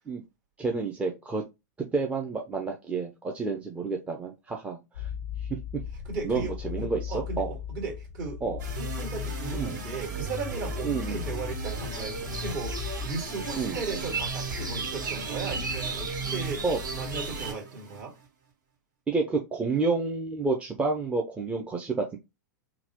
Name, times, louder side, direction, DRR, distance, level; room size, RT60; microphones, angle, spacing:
voice 1, 0.6-1.4 1.9-5.1 6.2-7.6 8.4-8.6 9.5-9.8 10.8-11.3 13.5-13.8 16.6-16.8 19.1-22.2, right 4 dB, 15° right, 0.6 m, -29 dB
sound 1, 4.9-13.1, left 9 dB, 75° left, 0.5 m, -37 dB
voice 2, 6.1-8.5 8.8-16.6 16.9-18.1, right 4 dB, 50° right, 2.0 m, -36 dB
sound 2, 8.6-18.3, right 4 dB, 65° right, 2.2 m, -37 dB
sound 3, 11.6-17.5, right 3 dB, 85° right, 1.0 m, -36 dB
3.9 x 2.3 x 2.9 m
hypercardioid pair, 115°, 10 cm